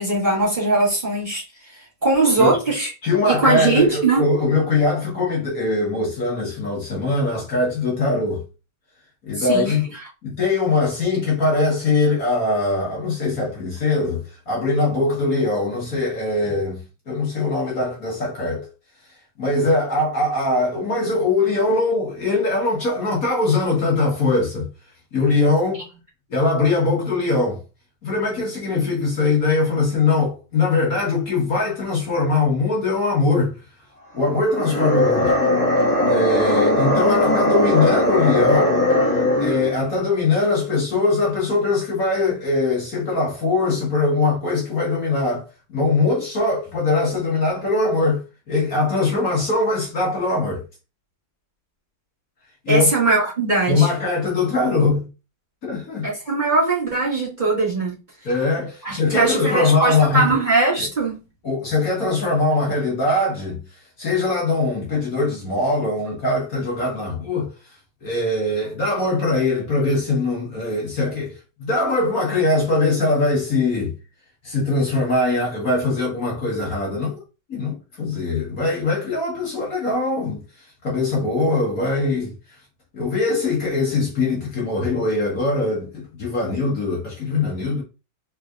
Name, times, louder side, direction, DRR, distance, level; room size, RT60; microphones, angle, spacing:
voice 1, 0.0-1.4 2.0-2.9 3.3-4.3 9.4-9.8 52.7-53.9 56.0-58.0 58.8-61.2, right 3 dB, 25° right, 2.0 m, -20 dB
voice 2, 3.0-8.4 9.2-9.8 10.2-18.7 19.4-24.7 25.1-25.8 26.3-27.6 28.0-33.5 34.1-35.4 36.0-38.8 39.4-50.6 52.6-52.9 53.7-55.1 55.6-56.1 58.2-60.3 60.8-60.9 61.4-73.9 74.4-77.2 77.5-82.3 82.9-87.8, left 3 dB, 50° left, 1.7 m, -21 dB
sound 1, 34.5-39.8, left 1 dB, 10° left, 1.3 m, -19 dB
4.1 x 3.9 x 2.4 m
omnidirectional pair, 2.1 m